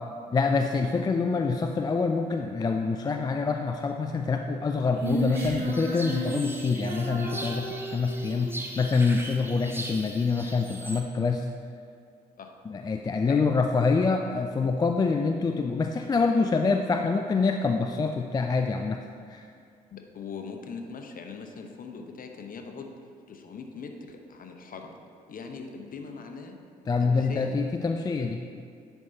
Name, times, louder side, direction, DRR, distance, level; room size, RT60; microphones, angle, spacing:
voice 1, 0.3-11.5 12.7-19.0 19.3-19.4 26.9-28.4, left 4 dB, 20° left, 5 dB, 0.3 m, -26 dB
sound 1, 5.0-11.0, right 1 dB, 10° right, 0.8 m, -41 dB
Female singing, 5.0-8.5, right 1 dB, 50° right, 1.1 m, -33 dB
voice 2, 19.9-22.9 23.3-25.0 25.3-26.6 27.0-27.6, left 5 dB, 45° left, 4 dB, 0.8 m, -41 dB
10.5 x 4.5 x 2.8 m, 2.3 s
hypercardioid pair, 45°, 20 cm